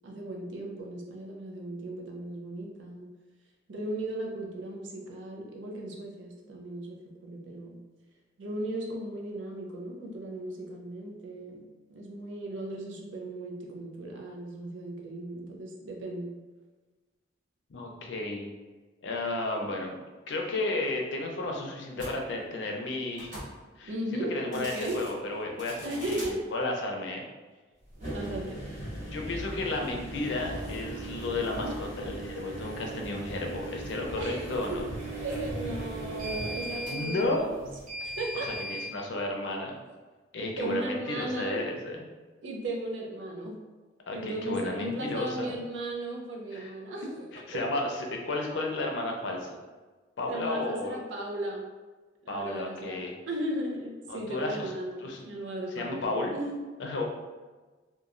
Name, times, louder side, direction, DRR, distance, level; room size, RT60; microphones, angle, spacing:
voice 1, 0.0-3.1 3.7-7.8 8.4-11.6 11.9-16.3 23.8-25.0 25.8-26.4 28.1-28.6 31.6-31.8 34.2-34.8 35.2-37.5 38.0-38.7 40.6-41.6 42.4-43.6 44.1-47.3 50.3-51.6 52.2-56.6, right 1 dB, 80° right, 0 dB, 0.5 m, -36 dB
voice 2, 17.7-18.5 19.0-20.0 20.3-23.4 23.8-23.9 24.3-27.2 29.1-34.9 36.9-37.4 38.3-39.8 40.3-42.1 44.1-45.5 46.5-46.7 47.3-49.5 50.2-51.0 52.3-53.1 54.1-54.7 55.0-55.3 55.7-56.3 56.8-57.0, left 2 dB, 70° left, 1 dB, 0.5 m, -33 dB
sound 1, 21.9-22.1 23.1-23.5 24.4-25.1 25.6-26.3 27.9-38.9, right 1 dB, 45° right, 1.0 m, -38 dB
2.9 x 2.2 x 2.5 m, 1.3 s
head